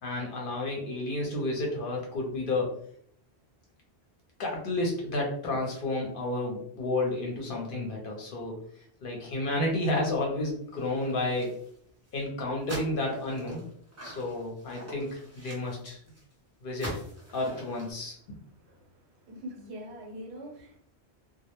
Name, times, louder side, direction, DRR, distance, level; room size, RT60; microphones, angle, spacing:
voice 1, 0.0-2.7 4.4-8.6 9.0-11.5 12.1-13.6 14.0-16.0 16.6-16.9 17.3-18.4, left 2 dB, 60° left, -1 dB, 0.7 m, -31 dB
sound 1, 10.8-11.8 12.1-12.2 12.6-16.3 16.7-17.9, equal, 20° right, 0.4 m, -44 dB
voice 2, 19.3-20.8, equal, 75° right, 0 dB, 1.0 m, -43 dB
2.1 x 2.0 x 2.9 m, 0.64 s
omnidirectional pair, 1.1 m